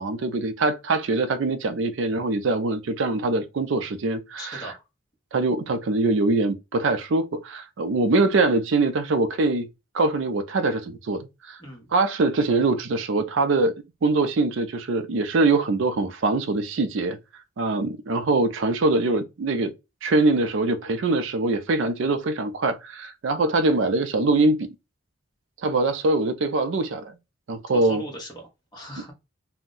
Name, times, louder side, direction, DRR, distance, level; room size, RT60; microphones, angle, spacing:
voice 1, 0.0-4.7 5.3-9.7 9.9-11.6 11.9-13.7 14.0-17.2 17.6-19.7 20.0-24.7 25.6-27.1 27.5-28.0, right 3 dB, 65° right, 0.4 m, -23 dB
voice 2, 4.4-4.8 11.6-11.9 27.7-29.1, equal, 20° left, 1.0 m, -39 dB
2.6 x 2.1 x 3.7 m
head